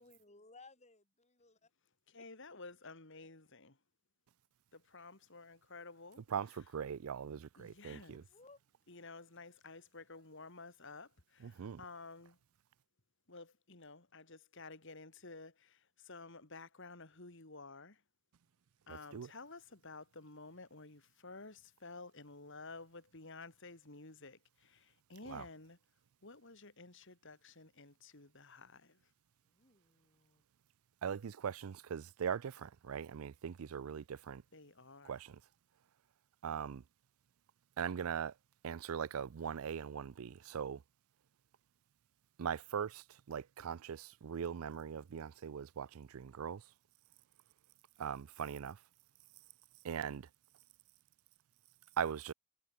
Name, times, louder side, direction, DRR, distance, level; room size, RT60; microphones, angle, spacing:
voice 1, 0.0-1.7 8.0-8.6 29.4-30.5, left 3 dB, 30° left, 7.1 m, -61 dB
voice 2, 2.1-3.8 4.7-6.6 7.6-8.3 8.9-12.4 13.3-18.0 18.9-25.8 26.2-29.0 34.5-35.2, left 3 dB, 60° left, 3.2 m, -53 dB
voice 3, 6.3-8.2 11.4-11.8 18.9-19.3 25.3-25.4 31.0-34.4 35.0-35.4 36.4-36.8 37.8-38.3 38.6-40.8 42.4-46.6 48.0-48.8 49.8-50.3 52.0-52.3, right 7 dB, 75° right, 0.4 m, -40 dB
head